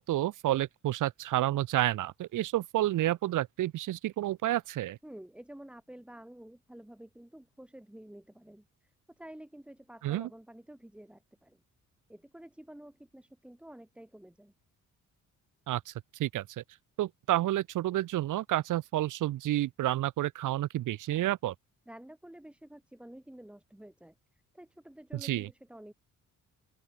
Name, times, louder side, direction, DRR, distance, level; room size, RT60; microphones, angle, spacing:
voice 1, 0.0-5.0 10.0-10.3 15.7-16.6 17.0-21.5 25.2-25.5, right 14 dB, 80° right, 1.8 m, -30 dB
voice 2, 5.0-11.6 12.1-14.5 21.9-25.9, right 1 dB, 5° right, 6.6 m, -50 dB
open air
cardioid pair, 175°, 30 cm